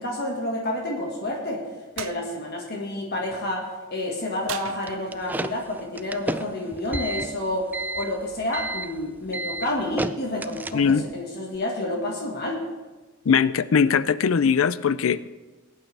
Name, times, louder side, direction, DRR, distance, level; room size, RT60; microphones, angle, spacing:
voice 1, 0.0-1.7 2.0-12.6, left 1 dB, 50° left, -1 dB, 1.7 m, -29 dB
Foam Smash, 2.0-2.2 4.5-5.4, right 9 dB, 75° right, 0.6 m, -36 dB
sound 1, 4.9-11.1, right 2 dB, 10° right, 0.3 m, -32 dB
voice 2, 10.7-11.0 13.3-15.3, left 6 dB, 75° left, 16 dB, 0.5 m, -20 dB
20.5 x 9.1 x 3.4 m, 1.2 s
head